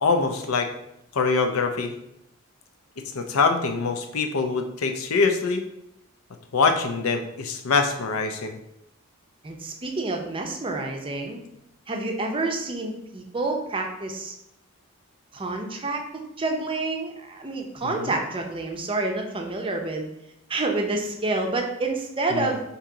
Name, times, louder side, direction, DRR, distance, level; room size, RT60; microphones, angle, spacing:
voice 1, 0.0-0.7 1.1-1.9 3.1-5.6 6.5-8.6 17.8-18.1 22.3-22.5, left 4 dB, 90° left, 6 dB, 0.5 m, -24 dB
voice 2, 9.4-11.4 11.9-14.3 15.3-20.1 20.5-22.6, right 2 dB, 25° right, 3 dB, 0.5 m, -28 dB
4.6 x 2.9 x 3.7 m, 0.82 s
head